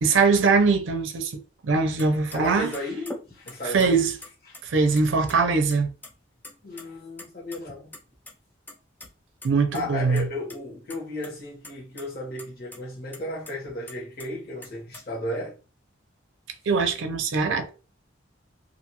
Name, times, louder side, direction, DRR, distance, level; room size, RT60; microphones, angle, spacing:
voice 1, 0.0-2.7 3.6-4.2 4.6-5.9 9.4-10.3 16.7-17.7, right 4 dB, 75° right, 0.5 m, -22 dB
sound 1, 2.0-2.1 2.3-2.4 2.7-3.9 4.2-5.0 5.3-5.4 5.7-6.1 6.4-6.8 7.2-8.3 8.7-9.1 9.4-9.5 9.7-9.8 10.2-10.6 10.9-11.3 11.6-12.0 12.4-12.5 12.7-12.8 13.1-14.3 14.6-15.0, left 1 dB, 10° left, 0.3 m, -42 dB
voice 2, 2.3-4.0 4.5-4.6 6.6-7.9 9.7-15.6, left 1 dB, 50° left, 1.2 m, -34 dB
2.5 x 2.3 x 2.8 m
head